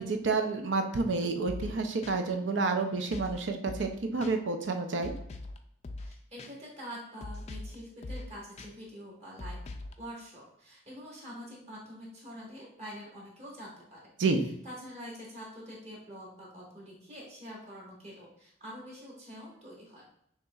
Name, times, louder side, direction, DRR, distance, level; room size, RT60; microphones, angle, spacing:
voice 1, 0.0-5.1 14.2-14.5, right 3 dB, 85° right, 5 dB, 0.6 m, -29 dB
sound 1, 1.5-1.7 2.0-2.1 3.1-3.4 3.7-3.9 4.2-4.3 5.0-5.6 5.8-6.1 6.4-6.5 7.2-7.7 8.0-8.3 8.6-8.7 9.4-9.9, left 2 dB, 35° left, 0.3 m, -41 dB
voice 2, 6.0-9.6 10.0-14.1 14.6-20.1, equal, 35° right, -4 dB, 1.4 m, -46 dB
6.4 x 2.9 x 2.3 m, 0.71 s
head